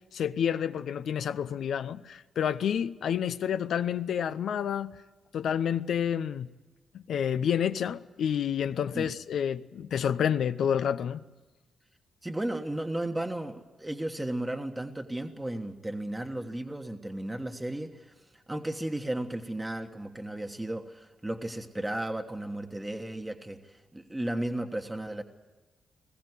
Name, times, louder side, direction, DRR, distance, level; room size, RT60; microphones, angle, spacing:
voice 1, 0.1-4.9 5.3-6.5 6.9-11.2, left 8 dB, 75° left, 0.6 m, -29 dB
voice 2, 12.2-18.1 18.5-25.2, right 1 dB, 15° right, 1.4 m, -34 dB
20.5 x 15.5 x 9.7 m
supercardioid pair, 50°, 0 cm